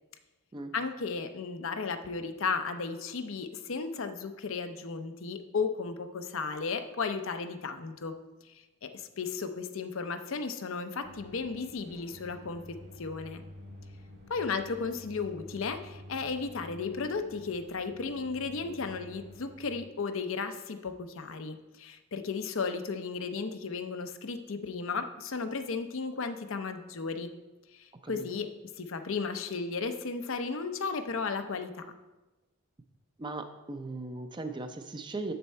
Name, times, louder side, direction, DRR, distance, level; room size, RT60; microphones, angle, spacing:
voice 1, 0.7-8.1 8.5-8.6 8.8-13.4 14.3-27.3 27.7-28.5 28.8-31.8, left 4 dB, 70° left, 8 dB, 0.6 m, -34 dB
sound 1, 11.0-19.9, left 1 dB, 55° right, 1.7 m, -50 dB
voice 2, 33.2-35.3, right 2 dB, 20° right, 7 dB, 0.5 m, -38 dB
7.2 x 6.9 x 4.3 m, 1.1 s
head